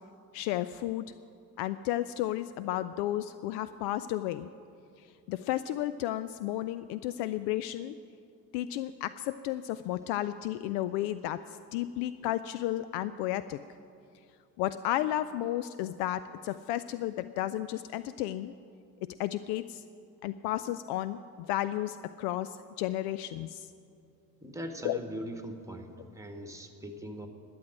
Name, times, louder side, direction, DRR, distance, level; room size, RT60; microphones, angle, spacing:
voice 1, 0.3-1.0 1.6-4.5 5.0-7.9 8.5-11.4 11.7-13.6 14.6-18.5 19.0-19.8 20.2-21.2 21.5-23.7 24.8-25.0, left 14 dB, 55° left, 14 dB, 0.5 m, -33 dB
voice 2, 24.4-27.3, right 1 dB, 5° right, 5 dB, 1.7 m, -41 dB
11.5 x 7.9 x 9.8 m, 2.5 s
figure-of-eight pair, 55°, 50 cm